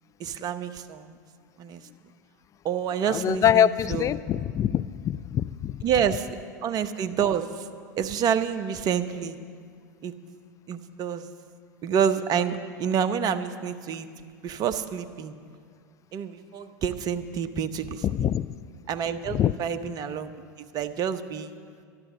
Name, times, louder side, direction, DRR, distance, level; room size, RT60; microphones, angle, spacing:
voice 1, 0.2-1.2 1.6-1.8 2.6-4.2 5.8-6.3 6.6-7.7 8.0-9.4 10.0-10.1 10.7-11.3 11.8-14.1 14.4-15.3 16.1-18.3 18.9-20.3 20.6-21.5, right 8 dB, 40° right, 10 dB, 0.9 m, -28 dB
voice 2, 3.1-5.8 18.0-18.5 19.3-19.5, left 10 dB, 30° left, 15 dB, 0.4 m, -24 dB
12.5 x 12.0 x 7.4 m, 2.1 s
hypercardioid pair, 90°, 10 cm